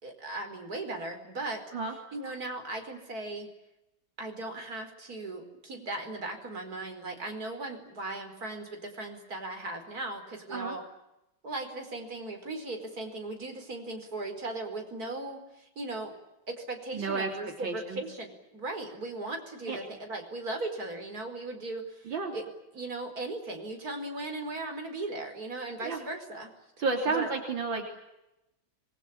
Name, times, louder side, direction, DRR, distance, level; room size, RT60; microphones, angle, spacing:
voice 1, 0.0-1.6 2.1-3.5 4.2-10.8 11.4-16.1 16.5-22.4 22.7-26.5 27.1-27.3, right 2 dB, 50° right, 4 dB, 5.4 m, -37 dB
voice 2, 16.9-18.0 19.7-19.8 22.1-22.4 25.8-26.0 26.8-27.8, right 4 dB, 75° right, 2 dB, 4.0 m, -31 dB
27.0 x 22.5 x 8.9 m, 0.91 s
omnidirectional pair, 2.1 m